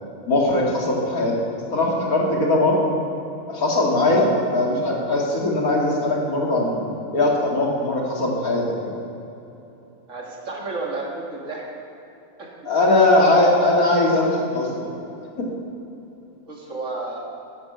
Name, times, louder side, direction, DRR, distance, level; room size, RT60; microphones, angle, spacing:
voice 1, 0.2-1.4 1.7-2.9 3.5-6.8 7.1-8.9 12.6-14.9 15.4-15.5, left 2 dB, 90° left, -2 dB, 2.7 m, -20 dB
voice 2, 10.1-11.6 12.4-12.7 16.5-17.2, right 3 dB, 60° right, -1 dB, 2.4 m, -32 dB
12.0 x 9.6 x 6.9 m, 2.9 s
omnidirectional pair, 1.5 m